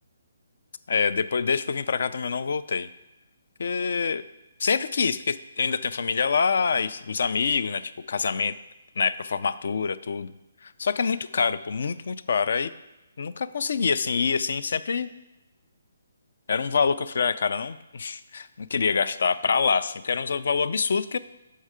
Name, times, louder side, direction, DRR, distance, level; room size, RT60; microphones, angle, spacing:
voice 1, 0.9-2.9 3.6-4.2 4.6-8.5 9.0-10.3 10.6-12.7 13.2-15.1 16.5-21.2, left 5 dB, 65° left, 14 dB, 0.4 m, -26 dB
6.5 x 5.5 x 4.9 m, 0.96 s
hypercardioid pair, 150°, 0 cm